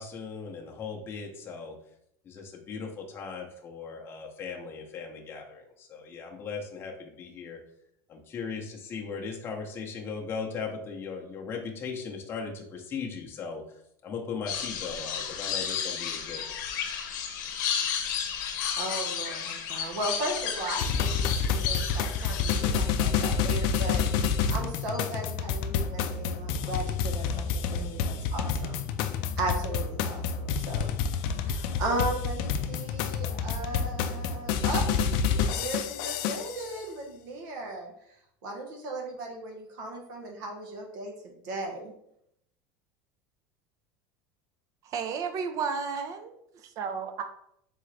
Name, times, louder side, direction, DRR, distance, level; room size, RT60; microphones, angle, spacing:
voice 1, 0.0-1.8 2.2-7.6 8.1-13.6 14.0-16.5, left 5 dB, 25° left, 0 dB, 0.7 m, -38 dB
sound 1, 14.5-22.6, left 7 dB, 90° left, 0.7 m, -32 dB
voice 2, 18.8-24.0 24.5-27.4 27.7-28.8 29.4-30.9 31.4-34.9 35.3-37.9 38.4-41.9, right 2 dB, 85° right, 1 dB, 1.2 m, -36 dB
sound 2, 20.8-36.7, left 6 dB, 60° left, 0.4 m, -28 dB
voice 3, 44.8-47.2, right 5 dB, 35° right, 7 dB, 0.5 m, -33 dB
3.8 x 3.7 x 3.3 m, 0.75 s
cardioid pair, 155°, 10 cm